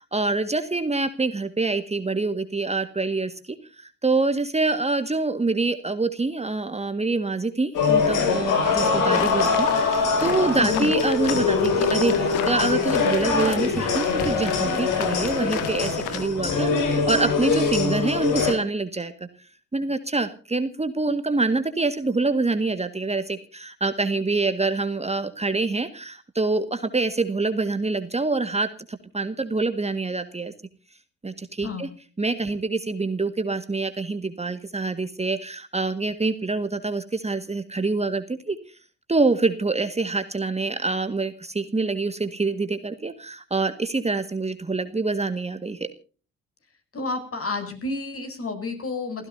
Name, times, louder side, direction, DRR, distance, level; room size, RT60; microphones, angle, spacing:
voice 1, 0.0-19.1 19.7-30.5 31.2-31.9 32.2-38.8 39.1-45.9, right 3 dB, 20° right, 9 dB, 1.8 m, -26 dB
sound 1, 7.7-18.5, left 4 dB, 65° left, 6.1 m, -23 dB
sound 2, 9.1-16.3, left 11 dB, 85° left, 2.0 m, -34 dB
voice 2, 10.6-10.9 31.6-31.9 46.9-49.3, left 3 dB, 40° left, 6 dB, 8.0 m, -30 dB
29.5 x 15.5 x 2.8 m, 0.39 s
hypercardioid pair, 50°, 33 cm